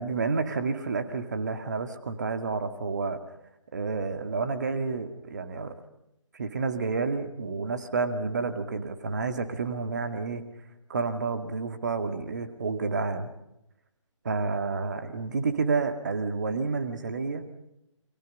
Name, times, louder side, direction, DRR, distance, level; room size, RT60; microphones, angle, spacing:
voice 1, 0.0-3.2 3.7-5.7 6.3-10.4 10.9-13.3 14.2-17.5, right 4 dB, 35° right, 8 dB, 2.1 m, -30 dB
29.5 x 24.5 x 5.5 m, 0.84 s
figure-of-eight pair, 155°, 17 cm